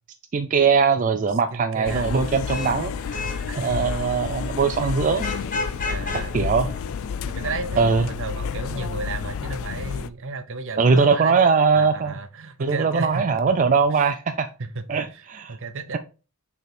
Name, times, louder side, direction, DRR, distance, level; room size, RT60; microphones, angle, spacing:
voice 1, 0.3-2.9 3.6-5.3 6.3-6.7 7.8-8.1 10.8-12.1 12.6-14.5 14.9-15.6, right 5 dB, 35° right, 0.4 m, -21 dB
voice 2, 1.5-2.1 3.5-3.8 5.8-6.4 7.3-11.4 11.7-13.5 13.9-14.0 14.6-15.2 15.5-16.0, right 3 dB, 60° right, 0.8 m, -33 dB
sound 1, 1.8-10.1, left 6 dB, 65° left, 0.4 m, -31 dB
Vehicle horn car horn honking / Traffic noise roadway noise, 2.2-7.5, left 3 dB, 40° left, 1.2 m, -34 dB
6.5 x 3.4 x 4.2 m
head